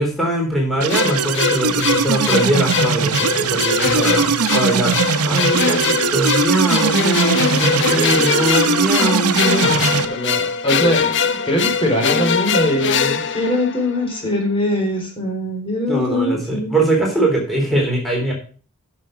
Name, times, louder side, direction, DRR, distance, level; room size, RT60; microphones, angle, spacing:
voice 1, 0.0-10.0 15.9-18.3, right 1 dB, ahead, -2 dB, 3.5 m, -21 dB
sound 1, 0.8-10.1, right 5 dB, 85° right, 0.8 m, -20 dB
sound 2, 0.9-14.2, left 5 dB, 55° left, 0.8 m, -21 dB
voice 2, 7.3-8.2 10.0-16.8, left 1 dB, 25° left, 0 dB, 4.5 m, -22 dB
10.5 x 6.7 x 6.1 m, 0.40 s
head